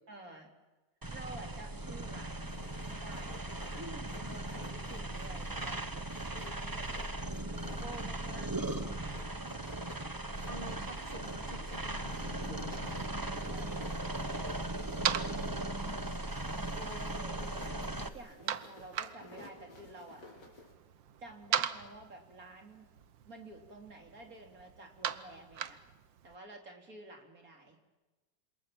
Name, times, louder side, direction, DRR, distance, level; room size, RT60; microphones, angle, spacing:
voice 1, 0.1-0.5 1.1-2.5 2.8-5.9 6.3-6.9 7.5-9.0 13.5-14.1 15.3-16.0 16.7-20.5 21.2-22.9 23.3-25.9 26.2-27.8, right 2 dB, 50° right, 2 dB, 3.8 m, -50 dB
sound 1, 1.0-18.1, right 2 dB, 15° right, 0.9 m, -38 dB
sound 2, 2.4-20.7, left 2 dB, 65° left, 5.1 m, -54 dB
voice 2, 10.5-13.1 15.3-15.5, left 1 dB, 30° left, 4 dB, 2.3 m, -48 dB
sound 3, 14.4-26.4, right 9 dB, 85° right, 1.8 m, -41 dB
27.5 x 27.0 x 7.7 m, 1.2 s
omnidirectional pair, 2.0 m